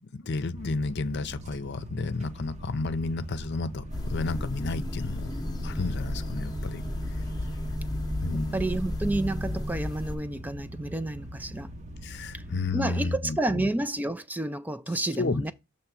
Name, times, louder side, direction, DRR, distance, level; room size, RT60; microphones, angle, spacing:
voice 1, 0.1-5.3 5.6-6.8 8.2-8.8 12.0-13.7 15.2-15.5, left 3 dB, 55° left, 0.6 m, -31 dB
sound 1, 0.5-12.8, equal, 35° right, 0.7 m, -42 dB
sound 2, 3.8-9.8, right 1 dB, 85° right, 1.3 m, -39 dB
indoors room tone WC bahtroom ambient ambience distant bird, 3.9-10.2, left 1 dB, 20° left, 0.8 m, -34 dB
voice 2, 8.3-11.7 12.3-12.4 12.7-15.5, right 1 dB, 10° right, 0.3 m, -30 dB
6.9 x 3.2 x 6.0 m
head